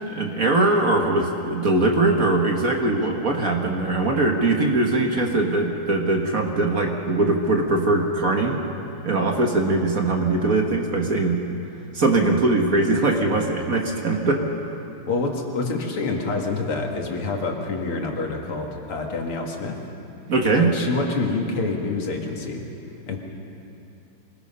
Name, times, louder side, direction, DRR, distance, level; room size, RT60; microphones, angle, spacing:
voice 1, 0.1-8.6 9.0-11.4 11.9-14.5 20.3-20.7, right 2 dB, 45° right, 2 dB, 1.6 m, -21 dB
voice 2, 15.1-19.8 20.6-22.6 23.1-23.2, left 3 dB, 80° left, 1 dB, 2.8 m, -27 dB
24.5 x 19.5 x 5.6 m, 2.8 s
omnidirectional pair, 2.4 m